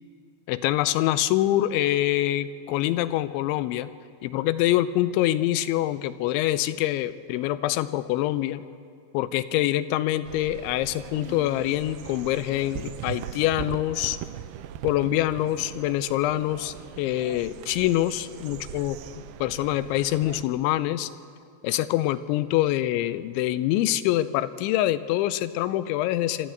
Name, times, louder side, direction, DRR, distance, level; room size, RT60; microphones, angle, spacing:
voice 1, 0.5-3.9 4.2-8.6 9.1-14.2 14.8-19.0 19.4-21.1 21.6-26.5, left 14 dB, 85° left, 14 dB, 3.0 m, -25 dB
sound 1, 10.2-20.4, right 11 dB, 80° right, 2.4 m, -40 dB
sound 2, 10.7-10.8 11.1-12.2 12.8-13.5 13.8-13.9 14.4-14.5 14.7-16.6 17.0-17.1, right 9 dB, 60° right, 2.7 m, -48 dB
26.0 x 13.0 x 7.9 m, 2.3 s
omnidirectional pair, 5.3 m